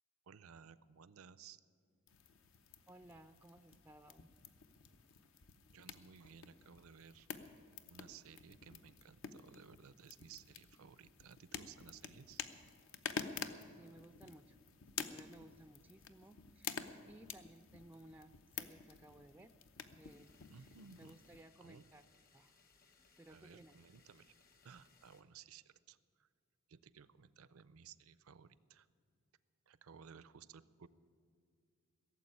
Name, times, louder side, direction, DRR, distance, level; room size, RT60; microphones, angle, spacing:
voice 1, 0.3-1.6 5.7-7.3 7.9-12.4 20.5-21.2 21.6-21.8 23.3-24.3 24.6-26.3 26.7-28.9 29.7-30.9, right 6 dB, 75° right, 17 dB, 0.5 m, -58 dB
sound 1, 2.1-21.4, left 6 dB, 65° left, 0.8 m, -50 dB
voice 2, 2.9-4.3 13.8-14.6 15.0-19.5 19.9-20.7 21.0-22.0 22.3-22.5 23.0-23.7, right 1 dB, 10° right, 9 dB, 0.3 m, -59 dB
sound 2, 20.0-25.2, left 5 dB, 45° left, 1.3 m, -69 dB
17.0 x 7.4 x 9.8 m, 2.3 s
head